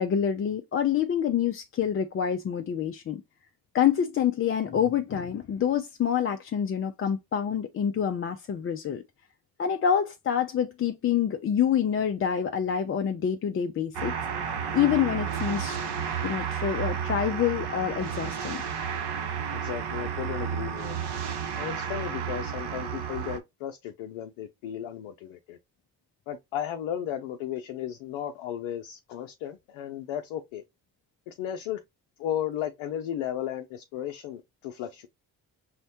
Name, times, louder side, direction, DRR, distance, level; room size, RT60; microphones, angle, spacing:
voice 1, 0.0-3.2 3.7-9.0 9.6-14.1 14.7-15.8 16.2-18.6, left 8 dB, 30° left, 0.4 m, -27 dB
sound 1, 13.9-23.4, right 7 dB, 55° right, 0.7 m, -32 dB
voice 2, 19.5-20.9 21.6-25.6 26.3-30.6 31.3-31.8 32.2-35.1, left 10 dB, 80° left, 0.6 m, -34 dB
5.6 x 2.1 x 2.7 m
hypercardioid pair, 45°, 48 cm